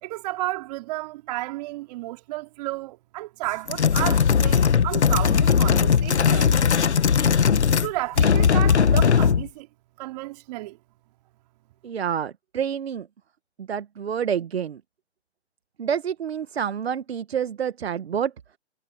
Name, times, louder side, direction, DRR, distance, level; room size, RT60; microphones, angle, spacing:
voice 1, 0.0-6.6 7.8-9.7 10.0-10.8, right 18 dB, 35° right, 3.6 m, -32 dB
sound 1, 3.7-7.9 8.2-9.5, left 6 dB, 70° left, 1.7 m, -19 dB
voice 2, 11.8-13.1 13.6-14.8 15.8-18.3, right 8 dB, 60° right, 1.6 m, -28 dB
figure-of-eight pair, 130°, 35 cm